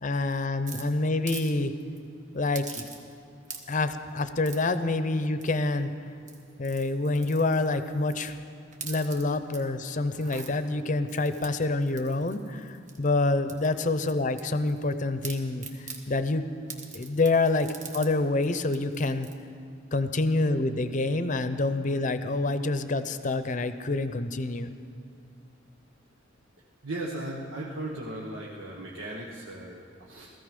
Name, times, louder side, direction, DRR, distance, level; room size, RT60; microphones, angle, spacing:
voice 1, 0.0-1.7 2.3-2.9 3.7-5.9 6.6-8.4 8.8-16.5 16.9-19.3 19.9-24.7, left 2 dB, 40° left, 11 dB, 0.7 m, -27 dB
sound 1, 0.7-1.5 1.8-2.0 2.5-3.2 3.4-3.9 4.4-4.8 5.4-5.8 6.2-8.3 8.7-9.6 10.0-10.5 11.1-13.1 13.5-14.9 15.2-16.0 16.7-18.1 18.4-18.5 18.7-19.3, right 5 dB, 40° right, 1.5 m, -44 dB
voice 2, 26.8-30.3, right 1 dB, 90° right, -2 dB, 1.3 m, -37 dB
17.0 x 14.5 x 5.3 m, 2.5 s
head